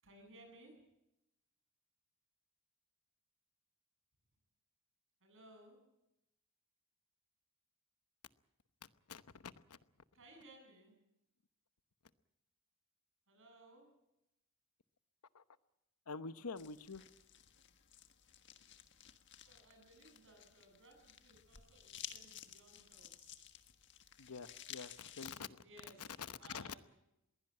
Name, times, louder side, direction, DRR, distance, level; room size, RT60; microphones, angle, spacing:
voice 1, 0.0-0.7 5.2-5.8 10.1-10.9 13.3-13.9 19.4-23.3 25.6-26.0 26.4-26.8, right 1 dB, 60° right, 3 dB, 7.8 m, -61 dB
voice 2, 9.1-9.8 15.3-15.4 16.1-17.0 24.2-26.7, left 5 dB, 80° left, 13 dB, 0.9 m, -47 dB
sound 1, 16.6-25.4, left 10 dB, 55° left, 1.5 m, -55 dB
21.5 x 16.5 x 8.9 m, 0.88 s
head